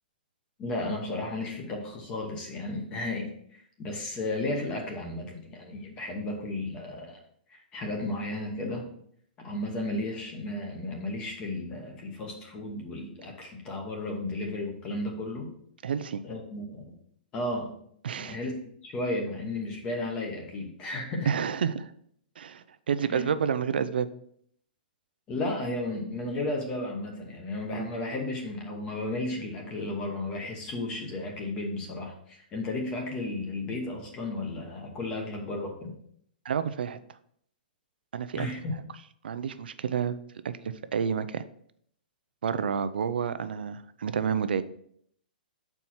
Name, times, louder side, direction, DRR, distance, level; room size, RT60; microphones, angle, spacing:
voice 1, 0.6-7.2 7.5-8.8 9.4-15.5 16.2-16.9 17.3-17.7 18.1-18.5 18.8-21.3 23.1-23.3 25.3-35.9 38.4-38.7, left 2 dB, 15° left, 1 dB, 1.0 m, -34 dB
voice 2, 15.8-16.2 18.0-18.4 21.3-21.9 22.4-24.1 36.4-37.0 38.1-38.5 39.2-40.2 40.4-41.4 42.4-44.6, right 7 dB, 80° right, 13 dB, 0.5 m, -29 dB
7.1 x 4.5 x 4.3 m, 0.66 s
hypercardioid pair, 175°, 5 cm